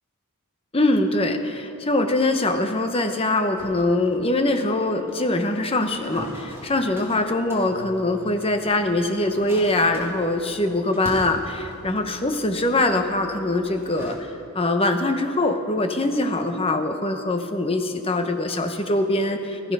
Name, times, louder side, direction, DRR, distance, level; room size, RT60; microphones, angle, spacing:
voice 1, 0.7-14.2 14.5-19.7, left 2 dB, 25° left, 6 dB, 0.9 m, -23 dB
sound 1, 3.6-14.2, equal, 10° right, 2.2 m, -42 dB
16.0 x 12.5 x 5.4 m, 2.7 s
head